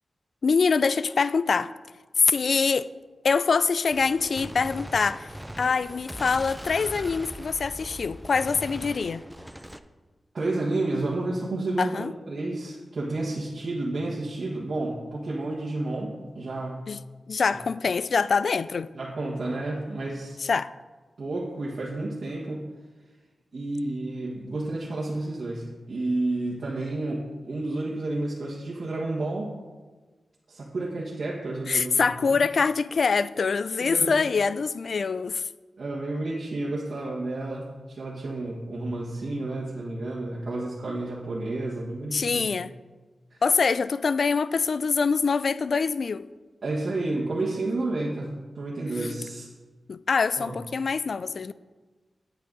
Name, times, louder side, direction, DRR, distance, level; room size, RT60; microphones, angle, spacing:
voice 1, 0.4-1.7 2.2-2.9 3.2-5.3 5.6-9.2 11.8-12.1 16.9-17.0 17.3-18.9 20.4-20.7 31.7-35.4 42.1-42.7 43.4-46.3 49.9-51.5, left 5 dB, 65° left, 0.3 m, -24 dB
Gunshot gunfire, 3.9-9.8, right 1 dB, 5° right, 0.5 m, -40 dB
voice 2, 10.3-16.8 17.5-17.6 18.9-20.4 21.2-22.7 23.5-29.5 30.5-32.5 33.8-34.1 35.8-42.5 43.3-43.4 46.6-49.5 50.4-50.5, right 2 dB, 65° right, 1.5 m, -31 dB
8.9 x 8.9 x 3.9 m
cardioid pair, 70°, 0 cm